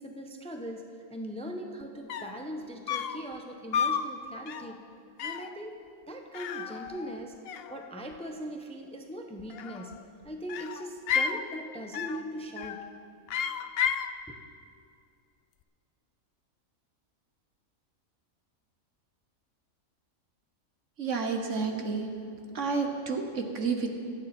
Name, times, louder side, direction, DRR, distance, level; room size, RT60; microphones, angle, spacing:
voice 1, 0.0-4.8 5.2-7.4 7.7-12.8 14.3-14.4, equal, 5° left, 3 dB, 0.8 m, -40 dB
sound 1, 1.8-1.9 2.1-2.4 2.9-3.3 3.7-4.1 4.5-4.8 5.2-5.5 6.3-7.2 7.5-8.2 9.4-10.0 10.5-11.4 11.9-12.3 12.6-12.9 13.3-14.1, left 7 dB, 60° left, 0.6 m, -32 dB
voice 2, 21.0-22.1 22.5-23.9, right 4 dB, 60° right, 4 dB, 1.5 m, -30 dB
25.0 x 9.2 x 4.4 m, 2.4 s
omnidirectional pair, 1.4 m